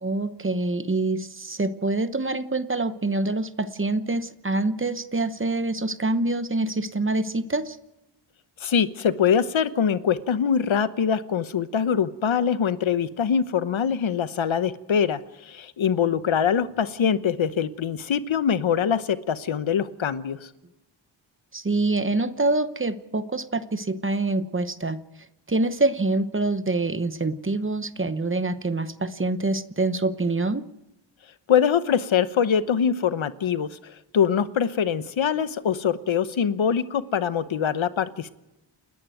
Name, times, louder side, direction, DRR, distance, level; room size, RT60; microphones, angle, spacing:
voice 1, 0.0-7.8 21.5-25.0 25.5-30.6, right 2 dB, 25° right, 12 dB, 1.0 m, -25 dB
voice 2, 8.6-20.5 31.5-33.8 34.1-38.3, left 7 dB, 75° left, 13 dB, 1.0 m, -23 dB
29.5 x 11.0 x 9.2 m, 0.93 s
wide cardioid pair, 140°, 47 cm